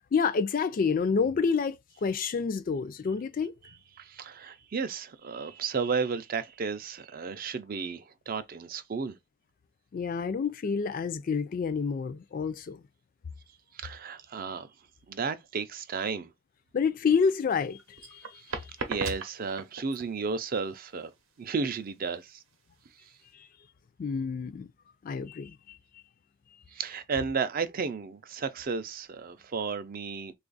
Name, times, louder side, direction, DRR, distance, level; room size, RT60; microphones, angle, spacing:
voice 1, 0.1-3.5 9.9-12.8 16.7-18.2 23.4-23.5 24.0-24.7 25.0-25.8, left 5 dB, 40° left, 0.3 m, -28 dB
voice 2, 4.0-9.2 13.7-14.7 15.1-16.3 18.3-18.5 18.9-21.1 21.4-22.4 26.7-30.3, right 5 dB, 45° right, 0.4 m, -33 dB
sound 1, 17.3-23.3, right 4 dB, 70° right, 0.7 m, -40 dB
3.2 x 2.4 x 3.8 m
head